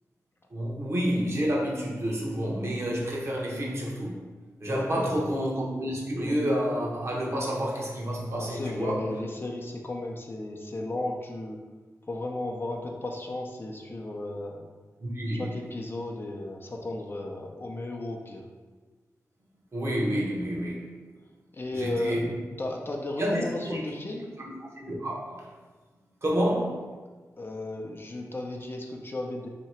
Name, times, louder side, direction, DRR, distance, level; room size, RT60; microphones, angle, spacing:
voice 1, 0.5-4.3 4.6-9.0 15.0-15.5 19.7-21.0 21.7-22.4 23.2-23.8 24.4-24.5 24.8-25.5 26.2-27.0, equal, 45° right, -4 dB, 1.0 m, -29 dB
voice 2, 4.7-5.3 8.3-11.6 12.1-14.7 15.4-18.5 21.5-24.3 27.4-29.5, left 2 dB, 35° left, 1 dB, 0.5 m, -34 dB
2.9 x 2.8 x 4.3 m, 1.3 s
cardioid pair, 55°, 6 cm